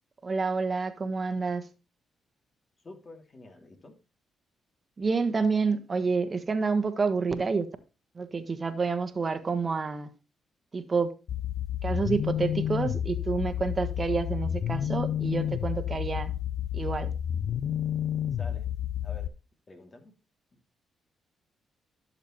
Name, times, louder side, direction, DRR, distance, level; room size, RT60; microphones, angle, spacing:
voice 1, 0.2-1.7 5.0-7.7 8.1-10.1 10.7-11.1 11.8-16.3 16.7-17.1, right 4 dB, 40° right, 1.3 m, -28 dB
voice 2, 2.8-3.9 18.4-18.7 19.0-19.3 19.7-20.2 20.5-20.6, left 2 dB, 40° left, 2.7 m, -48 dB
sound 1, 11.3-19.3, left 10 dB, 70° left, 0.4 m, -30 dB
12.0 x 6.7 x 3.1 m
supercardioid pair, 55°, 0 cm